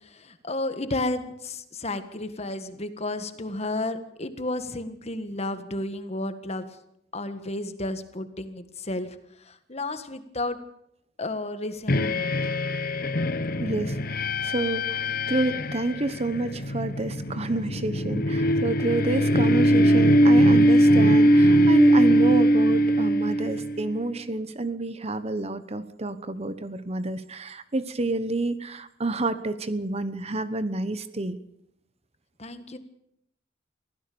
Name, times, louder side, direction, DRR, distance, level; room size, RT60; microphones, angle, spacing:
voice 1, 0.0-6.7 7.1-10.6 11.2-12.4 32.4-32.8, left 2 dB, 35° left, 10 dB, 1.7 m, -32 dB
sound 1, 11.9-23.9, equal, 50° left, 1.0 m, -21 dB
voice 2, 13.6-31.4, right 2 dB, 35° right, 13 dB, 1.1 m, -29 dB
24.0 x 16.0 x 7.0 m, 0.75 s
head